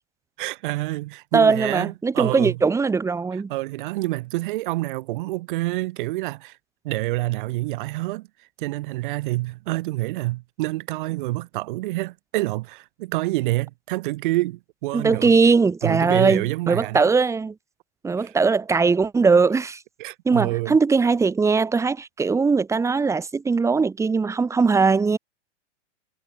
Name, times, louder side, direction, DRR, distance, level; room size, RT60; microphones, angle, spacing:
voice 1, 0.4-2.6 3.5-6.6 6.8-8.3 8.6-15.4 15.8-17.1 18.2-18.3 20.0-20.8, right 19 dB, 45° right, 5.0 m, -27 dB
voice 2, 1.3-3.5 14.9-17.5 18.0-19.8 20.2-25.2, right 4 dB, 10° right, 6.2 m, -20 dB
hypercardioid pair, 160°, 36 cm